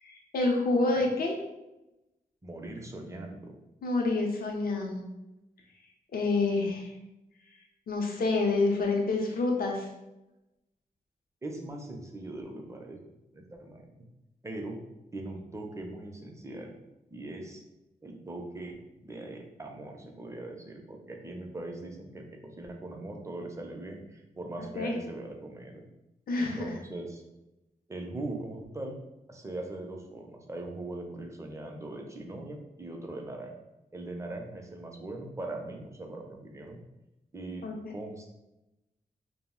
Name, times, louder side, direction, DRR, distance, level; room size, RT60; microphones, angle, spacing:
voice 1, 0.0-1.4 3.8-5.0 6.1-6.9 7.9-9.9 24.8-25.0 26.3-26.7 37.6-37.9, left 3 dB, 75° left, 1 dB, 0.5 m, -28 dB
voice 2, 2.4-3.5 11.4-13.0 13.3-13.9 14.4-14.8 15.1-16.8 17.1-17.6 18.0-25.8 26.4-27.2 27.9-29.0 29.3-33.5 33.9-36.8 37.3-38.3, right 2 dB, 20° right, 1 dB, 0.5 m, -40 dB
2.3 x 2.0 x 3.6 m, 0.95 s
wide cardioid pair, 80°, 15 cm